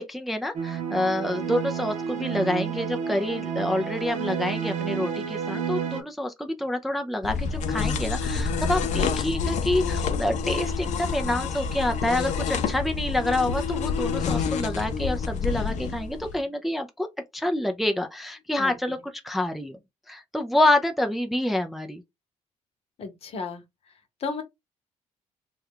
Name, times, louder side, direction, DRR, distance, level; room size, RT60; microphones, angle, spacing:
voice 1, 0.0-17.1 17.3-19.0 19.2-19.8 20.1-22.0, left 1 dB, ahead, 0.4 m, -27 dB
sound 1, 0.5-6.0, right 7 dB, 75° right, 1.0 m, -30 dB
sound 2, 7.2-16.4, left 5 dB, 65° left, 0.5 m, -28 dB
voice 2, 23.0-23.6 24.2-24.4, left 4 dB, 50° left, 0.9 m, -33 dB
3.2 x 2.3 x 3.6 m
cardioid pair, 120°, 13 cm